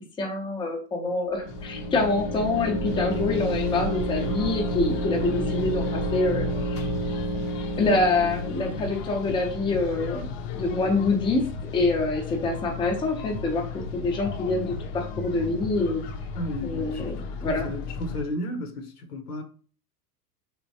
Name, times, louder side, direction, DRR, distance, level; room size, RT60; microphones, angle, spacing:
voice 1, 0.2-6.8 7.8-11.5 11.7-16.0 16.6-17.7, left 3 dB, 10° left, 0.5 m, -26 dB
sound 1, 1.3-9.0, right 1 dB, 45° right, 0.7 m, -31 dB
sound 2, 1.4-18.2, left 4 dB, 55° left, 0.6 m, -34 dB
voice 2, 16.4-19.4, left 1 dB, 85° left, 0.8 m, -34 dB
3.2 x 2.2 x 2.7 m
hypercardioid pair, 100°, 45 cm